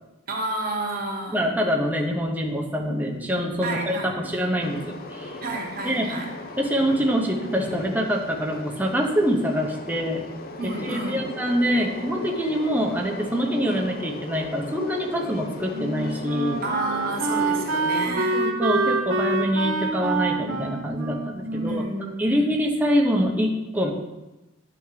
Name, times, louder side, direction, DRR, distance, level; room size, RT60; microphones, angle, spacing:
voice 1, 0.3-1.4 3.6-4.3 5.4-6.3 10.6-11.3 16.6-18.4 21.5-22.5, right 2 dB, 45° right, 0 dB, 1.0 m, -31 dB
voice 2, 1.3-5.4 5.8-6.1 6.6-10.2 10.6-16.6 18.1-21.8 22.2-23.9, equal, 10° right, 0 dB, 0.7 m, -25 dB
Train, 4.6-18.1, left 2 dB, 50° left, 0.5 m, -38 dB
Wind instrument woodwind instrument, 15.3-22.6, right 3 dB, 80° right, 0.7 m, -27 dB
10.0 x 3.5 x 3.1 m, 1.0 s
head